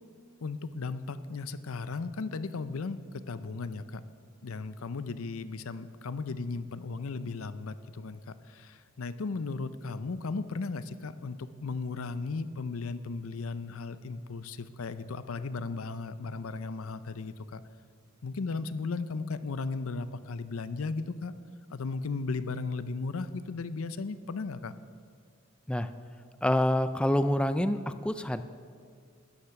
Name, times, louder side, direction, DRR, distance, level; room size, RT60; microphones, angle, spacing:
voice 1, 0.4-4.0 4.4-17.6 18.2-21.3 21.7-24.7, left 4 dB, 85° left, 13 dB, 0.6 m, -36 dB
voice 2, 26.4-28.4, left 1 dB, 5° left, 11 dB, 0.3 m, -27 dB
13.0 x 10.0 x 5.8 m, 2.1 s
head